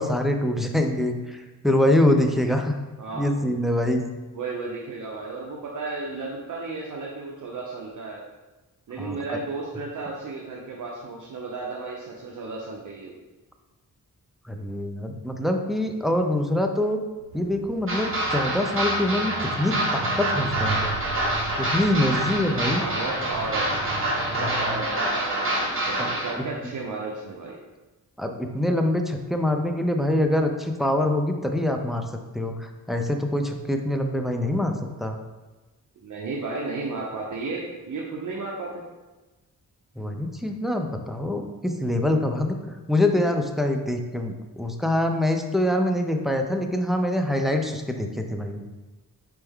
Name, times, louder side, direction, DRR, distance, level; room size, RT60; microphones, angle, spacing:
voice 1, 0.0-2.8 3.1-4.0 9.0-9.4 14.5-17.0 17.3-21.0 21.6-22.8 24.3-24.8 26.0-26.1 26.4-26.5 28.2-32.1 32.3-35.2 40.0-42.6 42.9-48.6, left 1 dB, ahead, 4 dB, 0.4 m, -25 dB
voice 2, 3.0-3.3 4.3-8.2 8.9-13.1 22.7-23.8 24.3-27.6 36.0-38.8, right 3 dB, 55° right, -2 dB, 0.7 m, -33 dB
sound 1, 17.1-25.8, right 6 dB, 85° right, 0.7 m, -38 dB
sound 2, 17.9-26.3, right 1 dB, 35° right, 1.5 m, -26 dB
4.3 x 3.4 x 3.5 m, 1.2 s
cardioid pair, 80°, 37 cm